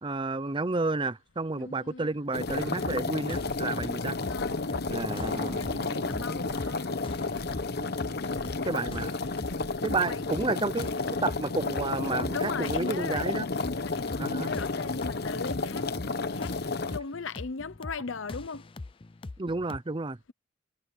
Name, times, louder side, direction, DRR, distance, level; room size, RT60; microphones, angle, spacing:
voice 1, 0.0-4.2 4.9-6.2 8.7-9.2 9.8-11.0 11.2-13.5 14.2-14.5 19.4-20.3, right 3 dB, 25° right, 0.7 m, -31 dB
voice 2, 1.6-2.1 4.3-4.9 5.4-7.5 8.0-9.6 10.1-10.2 12.3-15.9 16.3-16.5 16.9-18.6, left 4 dB, 80° left, 0.8 m, -39 dB
sound 1, 2.3-17.0, left 3 dB, 55° left, 1.0 m, -32 dB
sound 2, 2.5-3.9 4.4-7.9 8.4-10.5, right 1 dB, 85° right, 7.8 m, -49 dB
sound 3, 2.8-19.8, left 2 dB, 25° left, 0.5 m, -43 dB
head